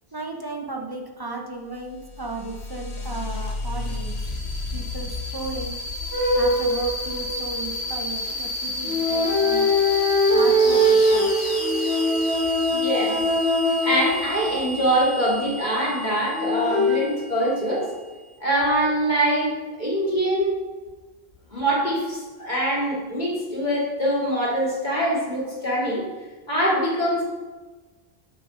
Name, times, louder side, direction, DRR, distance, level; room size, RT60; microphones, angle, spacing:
voice 1, 0.1-4.2 4.7-5.8 6.3-9.8 10.3-11.5, right 2 dB, 25° right, 1 dB, 1.0 m, -35 dB
sound 1, 1.8-18.1, left 1 dB, 75° left, 1.5 m, -32 dB
sound 2, 6.1-7.8 8.8-14.9 16.3-17.0, equal, 90° right, 2.5 m, -22 dB
voice 2, 12.7-13.2 13.8-17.9 18.4-19.5 19.8-20.5 21.5-26.0 26.5-27.2, right 1 dB, 45° left, -7 dB, 2.7 m, -23 dB
7.5 x 6.5 x 5.2 m, 1.3 s
omnidirectional pair, 1.1 m